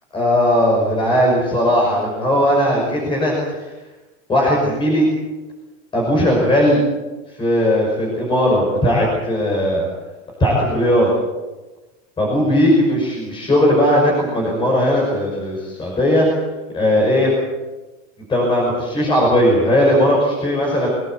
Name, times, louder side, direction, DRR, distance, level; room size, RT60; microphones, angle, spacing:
voice 1, 0.1-3.3 4.3-5.1 5.9-6.8 7.4-9.9 10.4-11.1 12.2-16.3 16.7-17.3 18.3-20.9, equal, 15° left, -2 dB, 6.0 m, -17 dB
24.5 x 19.5 x 7.9 m, 1.1 s
supercardioid pair, 170°, 38 cm